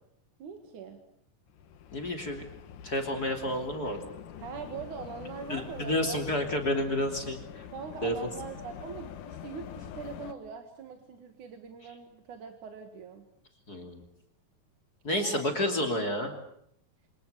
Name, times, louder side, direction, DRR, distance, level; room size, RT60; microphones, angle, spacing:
voice 1, 0.4-1.0 4.4-6.2 7.7-13.2 15.1-15.4, right 6 dB, 60° right, 5 dB, 3.1 m, -42 dB
sound 1, 1.5-10.3, left 9 dB, 65° left, 2.6 m, -45 dB
voice 2, 1.9-2.4 2.8-4.0 5.5-7.7 8.0-8.1 13.7-14.0 15.0-16.3, left 1 dB, 25° left, 4 dB, 3.1 m, -30 dB
28.0 x 26.0 x 6.9 m, 0.71 s
omnidirectional pair, 4.1 m